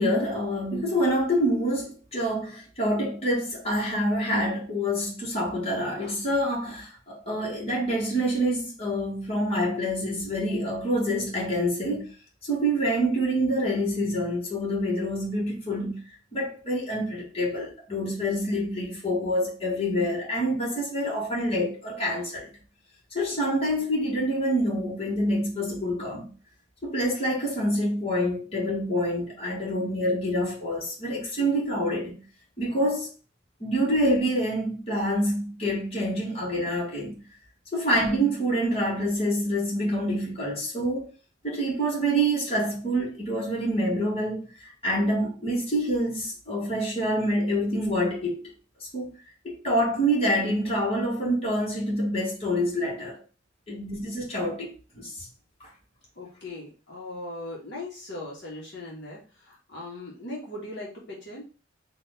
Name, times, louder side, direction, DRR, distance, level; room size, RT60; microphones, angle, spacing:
voice 1, 0.0-12.1 12.5-16.0 16.3-22.5 23.1-26.3 26.8-32.2 32.6-33.1 33.6-37.1 37.7-41.1 41.4-48.5 48.9-49.1 49.4-53.2 53.7-55.3, equal, 30° left, 1.8 m, -26 dB
voice 2, 56.1-61.4, left 2 dB, 60° left, 1.5 m, -39 dB
4.4 x 2.9 x 4.0 m
head